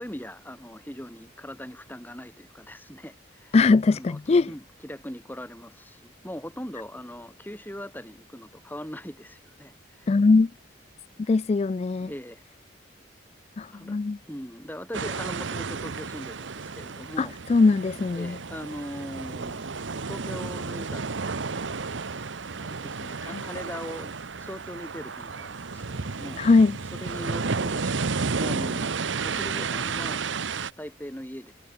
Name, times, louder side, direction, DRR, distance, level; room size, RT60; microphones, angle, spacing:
voice 1, 0.0-3.6 3.9-10.1 11.2-11.4 12.0-12.4 13.7-14.0 14.3-17.4 18.2-19.7 20.1-21.2 21.5-21.7 22.6-24.1 24.4-26.4 26.9-30.2 30.8-31.5, equal, 10° left, 6.2 m, -40 dB
voice 2, 3.5-4.5 10.1-10.5 11.3-12.1 13.6-14.2 17.2-18.4 23.3-23.4 26.4-26.8, left 3 dB, 30° left, 0.3 m, -21 dB
sound 1, 14.9-30.7, right 4 dB, 75° right, 1.0 m, -32 dB
sound 2, 18.4-29.2, left 1 dB, 65° left, 7.5 m, -61 dB
head